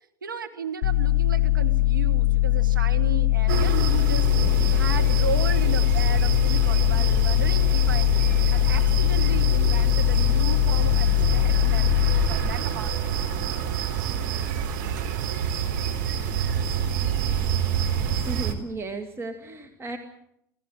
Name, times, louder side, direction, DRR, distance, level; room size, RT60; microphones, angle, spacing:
voice 1, 0.2-8.1 8.5-13.0, right 6 dB, 80° right, 3 dB, 1.9 m, -35 dB
sound 1, 0.8-12.3, left 18 dB, 55° left, 0.9 m, -21 dB
sound 2, 3.5-18.5, right 8 dB, 60° right, 3.7 m, -27 dB
voice 2, 18.2-20.0, right 2 dB, 25° right, 7 dB, 2.5 m, -34 dB
27.5 x 18.5 x 7.8 m, 0.77 s
figure-of-eight pair, 70°, 11 cm